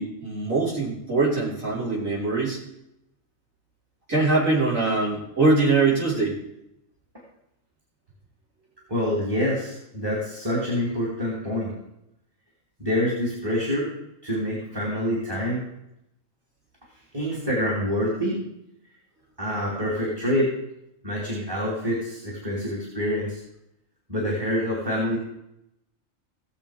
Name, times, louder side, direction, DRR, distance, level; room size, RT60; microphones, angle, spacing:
voice 1, 0.0-2.6 4.1-6.4, right 3 dB, 80° right, -7 dB, 5.5 m, -23 dB
voice 2, 8.9-11.7 12.8-13.9 14.2-15.7 17.1-18.4 19.4-20.5 21.0-23.4 24.1-25.2, equal, 15° right, -4 dB, 3.2 m, -26 dB
18.0 x 7.2 x 5.2 m, 0.82 s
omnidirectional pair, 1.4 m